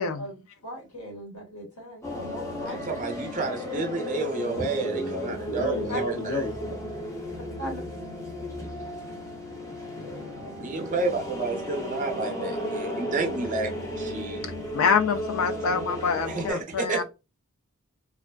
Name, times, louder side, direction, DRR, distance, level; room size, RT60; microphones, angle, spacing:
voice 1, 0.0-2.8 3.7-3.8 5.9-6.0 7.6-7.8, equal, 85° left, 1.3 m, -38 dB
sound 1, 2.0-16.5, left 1 dB, 15° left, 0.5 m, -34 dB
voice 2, 2.7-6.4 10.6-13.7 14.0-14.5 16.3-17.0, right 3 dB, 35° right, 0.5 m, -30 dB
voice 3, 4.6-6.8 9.5-10.9, left 2 dB, 55° left, 0.8 m, -34 dB
voice 4, 14.7-17.0, left 6 dB, 70° left, 0.4 m, -25 dB
2.4 x 2.3 x 2.2 m
head